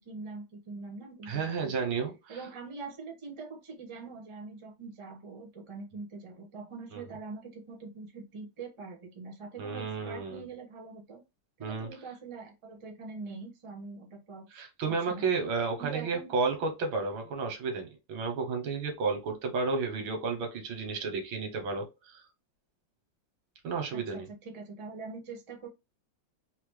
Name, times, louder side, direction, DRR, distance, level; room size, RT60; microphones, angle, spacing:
voice 1, 0.0-1.9 2.3-11.2 11.6-15.3 15.8-16.3 23.9-25.7, right 4 dB, 45° right, 0.4 m, -43 dB
voice 2, 1.3-2.4 6.9-7.0 9.6-10.4 11.6-11.9 14.5-22.2 23.6-24.3, right 4 dB, 85° right, 1.7 m, -32 dB
3.9 x 2.0 x 3.1 m
omnidirectional pair, 2.1 m